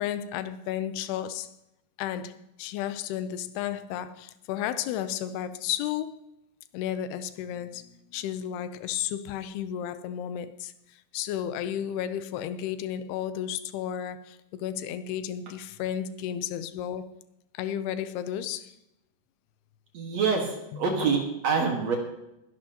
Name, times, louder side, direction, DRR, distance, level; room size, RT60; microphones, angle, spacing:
voice 1, 0.0-1.5 2.0-6.2 6.7-17.1 17.5-18.8 20.7-21.1, left 10 dB, 80° left, 2.4 m, -33 dB
voice 2, 19.9-22.0, right 5 dB, 55° right, 2.0 m, -26 dB
23.5 x 11.0 x 2.9 m
omnidirectional pair, 5.2 m